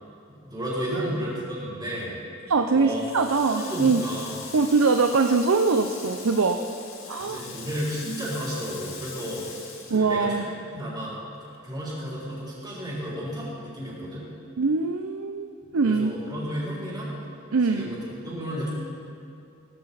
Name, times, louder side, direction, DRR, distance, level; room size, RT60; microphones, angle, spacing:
voice 1, 0.3-2.2 2.7-3.0 3.5-4.4 7.2-9.4 9.9-10.4 10.7-11.2 11.6-14.3 15.8-17.1 17.6-18.7, equal, 20° right, -11 dB, 4.0 m, -32 dB
voice 2, 2.5-4.0 4.5-6.6 7.1-7.4 9.9-10.5 14.6-16.1 17.5-18.0, right 4 dB, 85° right, 5 dB, 0.6 m, -23 dB
Water tap faucet, 2.9-10.8 11.1-12.4, left 5 dB, 70° left, 2.0 m, -42 dB
17.5 x 14.5 x 4.1 m, 2.7 s
head